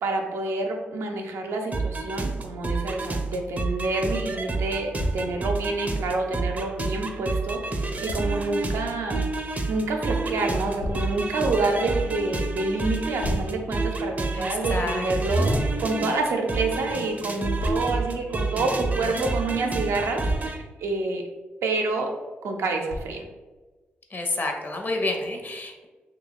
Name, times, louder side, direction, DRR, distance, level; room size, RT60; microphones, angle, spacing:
voice 1, 0.0-9.2 9.7-15.5 15.8-21.2 21.6-22.1 22.4-23.2, right 3 dB, 85° right, 2 dB, 0.5 m, -28 dB
sound 1, 1.7-20.6, right 3 dB, 35° right, 0.5 m, -29 dB
Thump thud, 5.0-5.3 8.1-8.3 10.8-11.1 13.2-13.5 15.5-15.8 17.6-17.9 20.0-20.6 22.9-23.2, left 1 dB, 85° left, 0.5 m, -31 dB
voice 2, 14.3-15.0 24.1-25.9, left 2 dB, 45° left, 3 dB, 0.7 m, -29 dB
2.9 x 2.3 x 3.9 m, 1.3 s
cardioid pair, 55°, 5 cm